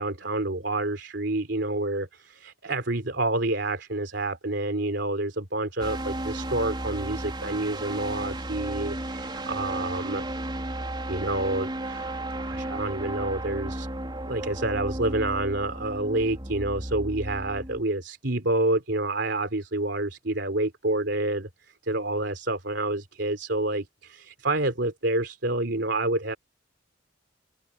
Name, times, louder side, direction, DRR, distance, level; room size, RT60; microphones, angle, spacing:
voice 1, 0.0-10.2 11.1-13.9 14.2-26.4, right 2 dB, 65° right, 3.3 m, -28 dB
sound 1, 5.8-17.8, right 1 dB, 25° right, 3.9 m, -34 dB
open air
head